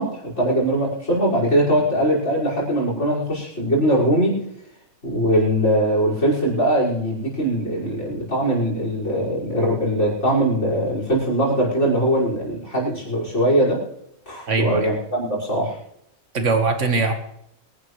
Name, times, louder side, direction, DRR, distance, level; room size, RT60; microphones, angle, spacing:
voice 1, 0.0-4.4 5.0-13.8 14.3-15.8, right 1 dB, 50° left, -3 dB, 6.3 m, -21 dB
voice 2, 14.5-14.9 16.3-17.1, right 3 dB, 55° right, 5 dB, 2.1 m, -20 dB
25.0 x 11.5 x 3.3 m, 0.74 s
omnidirectional pair, 1.5 m